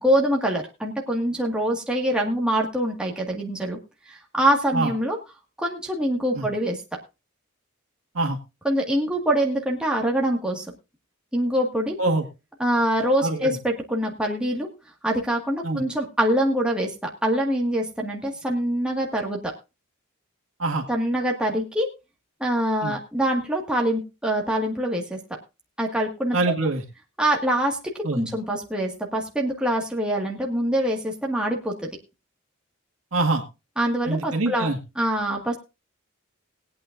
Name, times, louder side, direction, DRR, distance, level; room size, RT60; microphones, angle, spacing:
voice 1, 0.0-3.8 4.1-5.2 5.6-6.8 8.6-10.7 11.3-12.0 12.6-14.7 15.0-16.9 17.2-19.4 20.9-21.9 22.4-25.2 25.8-26.4 27.2-31.9 33.8-34.7 35.0-35.6, right 1 dB, 5° right, -1 dB, 1.9 m, -24 dB
voice 2, 13.2-13.6 15.6-15.8 20.6-20.8 22.8-22.9 26.3-26.8 28.0-28.3 33.1-33.4 34.1-34.8, right 2 dB, 70° right, 2 dB, 2.0 m, -24 dB
21.0 x 8.7 x 2.6 m, 0.27 s
head